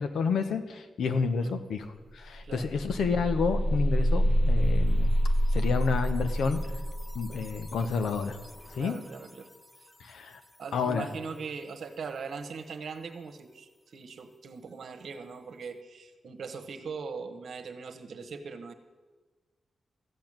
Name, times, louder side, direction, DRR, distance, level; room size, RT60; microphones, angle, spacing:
voice 1, 0.0-5.1 5.5-6.6 7.1-8.4 8.7-9.0 10.0-10.4 10.7-11.1, left 5 dB, 85° left, 9 dB, 1.1 m, -30 dB
sound 1, 1.8-1.9 2.2-9.0, equal, 10° left, 0.5 m, -28 dB
voice 2, 8.8-9.5 9.8-9.9 10.6-18.7, right 5 dB, 60° right, 8 dB, 1.3 m, -40 dB
14.0 x 8.1 x 8.9 m, 1.3 s
wide cardioid pair, 165°, 0 cm